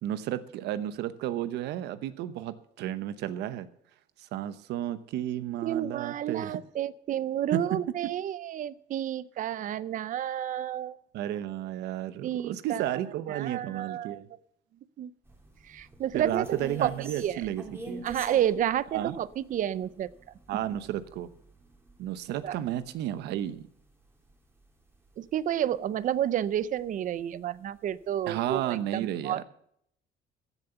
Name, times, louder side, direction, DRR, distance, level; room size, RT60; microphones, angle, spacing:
voice 1, 0.0-3.7 4.3-6.6 7.5-8.1 11.1-14.3 16.1-18.0 18.9-19.2 20.5-21.3 22.0-23.7 28.3-29.4, right 12 dB, 80° right, 13 dB, 0.9 m, -33 dB
voice 2, 5.6-11.0 12.2-12.9 13.3-14.2 15.0-15.1 15.7-16.9 17.2-17.4 18.0-20.1 22.3-22.6 25.2-29.4, right 11 dB, 50° right, 18 dB, 0.6 m, -30 dB
sound 1, 15.3-25.7 26.0-26.2 26.6-27.4 27.8-27.9 28.2-28.6, right 2 dB, 15° right, 3.0 m, -47 dB
15.0 x 7.2 x 7.0 m, 0.70 s
cardioid pair, 110°, 17 cm